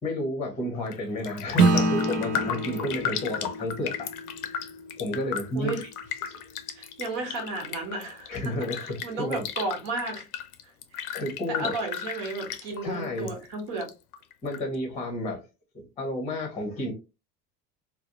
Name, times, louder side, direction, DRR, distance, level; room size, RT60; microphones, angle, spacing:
voice 1, 0.0-4.1 4.4-4.6 5.0-5.9 8.3-9.4 11.1-11.8 12.8-13.3 14.4-15.5 15.7-16.9, left 1 dB, 15° left, 0.7 m, -31 dB
Raindrop, 0.7-1.0 1.2-13.3 13.6-14.6 15.0-15.1, left 9 dB, 65° left, 0.5 m, -35 dB
Acoustic guitar / Strum, 1.6-6.4, right 2 dB, 80° right, 0.6 m, -27 dB
voice 2, 6.7-10.3 10.9-11.0 11.5-13.9, right 3 dB, 55° right, 1.1 m, -33 dB
2.5 x 2.0 x 2.6 m
figure-of-eight pair, 70°, 48 cm